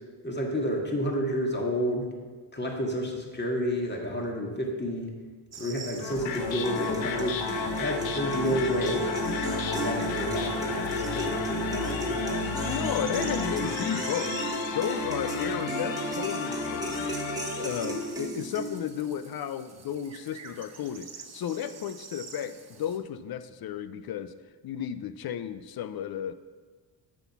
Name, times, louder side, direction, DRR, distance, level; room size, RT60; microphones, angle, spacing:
voice 1, 0.2-2.1 2.5-5.1 5.6-7.4 7.8-9.1 9.7-12.5, equal, 20° left, 0 dB, 2.1 m, -30 dB
sound 1, 5.5-23.0, right 5 dB, 30° right, 1.2 m, -48 dB
sound 2, 6.0-18.2, left 4 dB, 65° left, 1.0 m, -32 dB
sound 3, 6.3-19.0, right 1 dB, 5° right, 1.4 m, -36 dB
voice 2, 12.6-14.4 14.7-17.2 17.6-24.3 24.6-26.3, left 9 dB, 50° left, 13 dB, 0.6 m, -33 dB
7.7 x 6.1 x 6.0 m, 1.4 s
supercardioid pair, 75°, 50 cm